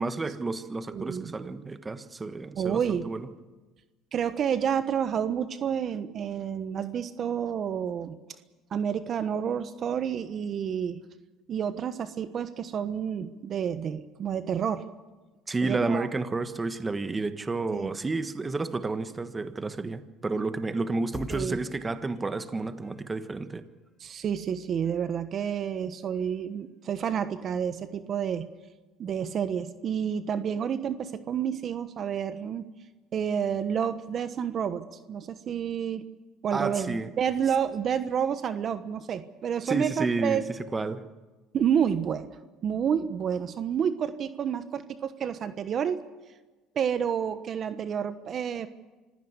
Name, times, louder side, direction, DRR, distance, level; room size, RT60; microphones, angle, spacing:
voice 1, 0.0-3.3 15.5-23.6 36.5-37.1 39.7-40.4 40.7-41.0, right 3 dB, 20° right, 10 dB, 1.4 m, -31 dB
voice 2, 0.9-1.3 2.6-3.1 4.1-8.2 8.7-11.0 11.5-14.9 15.6-16.1 17.7-17.9 21.3-21.6 24.0-28.5 29.0-32.6 33.1-36.0 36.4-40.4 41.5-42.3 42.6-46.0 46.7-48.7, right 8 dB, 45° right, 11 dB, 1.2 m, -29 dB
sound 1, 21.0-21.5 22.1-23.1 24.2-24.3 24.8-25.1 25.5-25.8 26.2-26.3, left 4 dB, 25° left, 1.1 m, -45 dB
25.5 x 16.0 x 8.1 m, 1.2 s
supercardioid pair, 105°, 0 cm